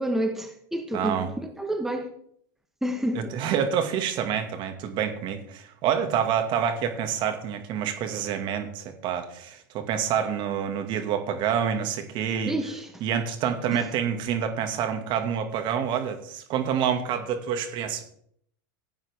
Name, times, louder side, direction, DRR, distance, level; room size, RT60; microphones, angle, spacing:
voice 1, 0.0-2.1 2.8-3.3 12.5-13.0 13.7-13.9, right 1 dB, 5° right, 1.3 m, -29 dB
voice 2, 0.9-1.3 3.1-12.5 13.0-18.0, right 8 dB, 45° right, 2.0 m, -27 dB
14.5 x 8.9 x 3.5 m
hypercardioid pair, 105°, 11 cm